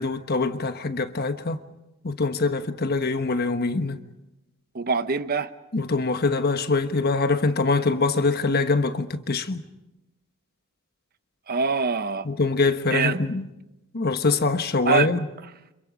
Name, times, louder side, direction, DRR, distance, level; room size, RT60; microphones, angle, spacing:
voice 1, 0.0-1.6 2.0-4.0 5.7-9.6 12.2-13.4 13.9-15.2, left 3 dB, 45° left, 1.2 m, -24 dB
voice 2, 4.7-5.5 11.5-12.3 12.9-13.2 14.8-15.1, right 5 dB, 45° right, 0.8 m, -24 dB
30.0 x 26.5 x 5.1 m
head